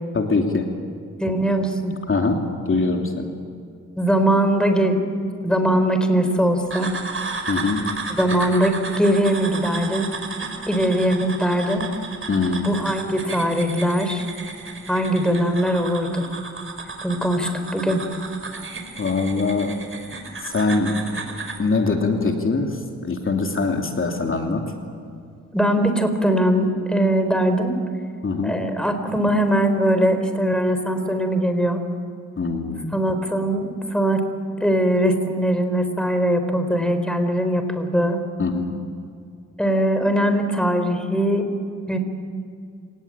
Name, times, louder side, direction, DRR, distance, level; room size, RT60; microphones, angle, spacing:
voice 1, 0.1-0.7 2.1-3.3 7.5-7.8 12.3-12.7 19.0-19.8 20.4-21.0 21.6-24.7 28.2-28.6 32.4-33.0 38.4-38.8, left 3 dB, 45° left, 2 dB, 2.9 m, -23 dB
voice 2, 1.2-1.9 4.0-6.9 8.1-10.1 10.7-11.9 12.6-14.3 14.9-16.3 17.0-18.0 25.5-27.8 28.4-31.8 32.9-34.2 34.6-38.2 39.6-41.5 41.9-42.0, right 1 dB, 5° left, 7 dB, 4.4 m, -21 dB
sound 1, 6.7-21.6, right 4 dB, 45° right, 4.6 m, -33 dB
28.0 x 19.0 x 8.9 m, 2.3 s
cardioid pair, 55°, 29 cm